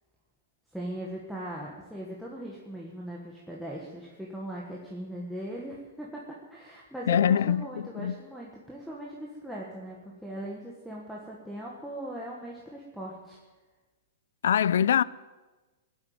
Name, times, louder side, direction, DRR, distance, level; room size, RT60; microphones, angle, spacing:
voice 1, 0.7-13.4, right 1 dB, ahead, 1.4 m, -39 dB
voice 2, 7.1-8.2 14.4-15.0, left 9 dB, 75° left, 0.5 m, -24 dB
18.5 x 8.0 x 9.3 m
hypercardioid pair, 175°, 0 cm